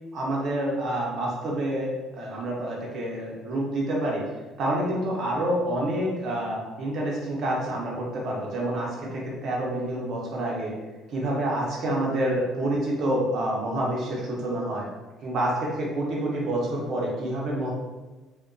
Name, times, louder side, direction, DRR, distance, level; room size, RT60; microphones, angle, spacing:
voice 1, 0.1-4.2 4.6-10.7 11.1-14.9 15.2-17.7, right 1 dB, 45° right, -2 dB, 0.6 m, -28 dB
2.8 x 2.1 x 2.5 m, 1.2 s
cardioid pair, 170°, 0 cm